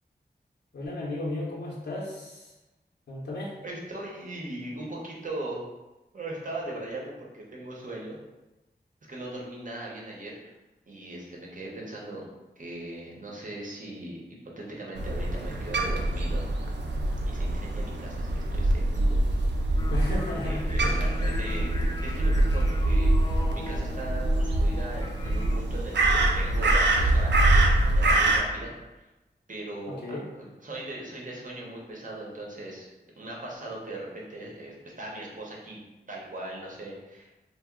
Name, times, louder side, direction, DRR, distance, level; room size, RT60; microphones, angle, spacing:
voice 1, 0.7-2.5 3.1-3.6 19.9-20.9 29.9-30.3, left 1 dB, 75° left, -5 dB, 0.6 m, -34 dB
voice 2, 3.6-5.6 6.1-8.2 9.1-10.5 10.9-12.2 12.6-14.2 14.6-16.5 17.2-19.2 20.4-29.0 29.5-30.0 30.4-35.8 36.1-37.3, right 1 dB, 50° right, -3 dB, 0.8 m, -39 dB
Crow, 15.0-28.4, right 1 dB, 85° right, 0.4 m, -24 dB
sound 1, 19.8-25.6, left 1 dB, 20° left, 0.3 m, -39 dB
2.8 x 2.0 x 3.5 m, 1.1 s
wide cardioid pair, 100°, 18 cm